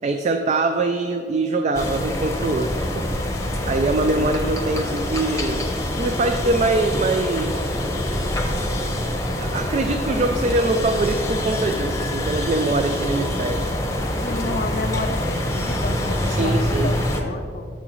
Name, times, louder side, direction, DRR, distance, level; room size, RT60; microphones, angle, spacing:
voice 1, 0.0-3.0 3.6-7.7 9.4-13.7 16.3-17.0, right 2 dB, 40° right, 6 dB, 0.4 m, -23 dB
sound 1, 1.7-17.2, left 1 dB, 20° left, 0.8 m, -25 dB
voice 2, 14.2-17.7, left 3 dB, 55° left, 8 dB, 0.5 m, -31 dB
9.9 x 6.9 x 3.1 m, 2.3 s
head